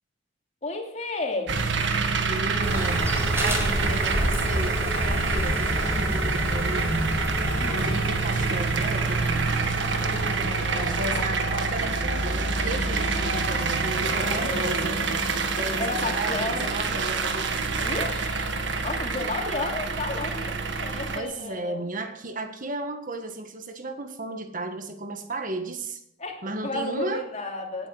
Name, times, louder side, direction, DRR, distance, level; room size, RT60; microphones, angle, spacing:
voice 1, 0.6-1.6 7.6-7.9 9.9-11.0 14.1-15.2 15.6-16.7 17.8-18.5 18.8-21.8 26.2-27.9, left 2 dB, 35° left, 2 dB, 2.8 m, -33 dB
sound 1, 1.5-21.2, right 4 dB, 65° right, 1.6 m, -27 dB
voice 2, 2.3-7.2 7.7-9.6 10.7-15.0 15.6-18.2 21.1-26.0 26.4-27.2, right 2 dB, 45° right, 7 dB, 1.5 m, -34 dB
sound 2, 2.6-11.3, equal, 15° right, 3.9 m, -30 dB
17.5 x 9.4 x 6.3 m, 0.77 s
head